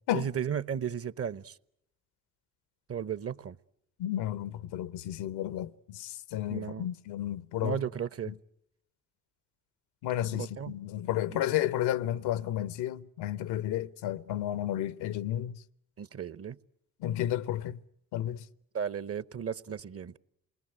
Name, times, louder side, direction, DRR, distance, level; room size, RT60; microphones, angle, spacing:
voice 1, 0.1-1.6 2.9-3.6 6.5-6.9 7.6-8.3 10.2-10.7 11.3-11.4 16.0-16.6 18.7-20.2, right 8 dB, 35° right, 0.9 m, -35 dB
voice 2, 4.0-7.8 8.3-8.4 10.0-15.6 17.0-17.8 18.1-18.4, left 12 dB, 70° left, 1.0 m, -32 dB
28.0 x 20.5 x 7.9 m
hypercardioid pair, 50°, 41 cm